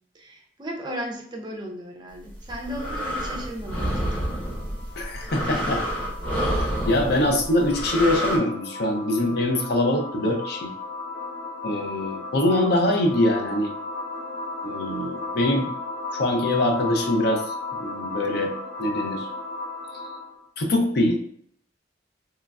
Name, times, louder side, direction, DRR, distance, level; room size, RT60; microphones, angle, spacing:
voice 1, 0.1-3.9 5.5-5.6, equal, 25° right, 1 dB, 0.4 m, -35 dB
sound 1, 2.3-8.4, equal, 10° left, 0.9 m, -28 dB
sound 2, 3.8-20.4, left 3 dB, 40° left, 0.9 m, -35 dB
voice 2, 5.0-5.8 6.5-6.6 6.8-10.7 11.6-13.7 14.6-15.7 16.1-17.5 17.8-18.5 18.8-19.3 20.6-21.2, left 1 dB, 55° left, 3 dB, 0.5 m, -23 dB
3.1 x 2.3 x 2.3 m, 0.63 s
head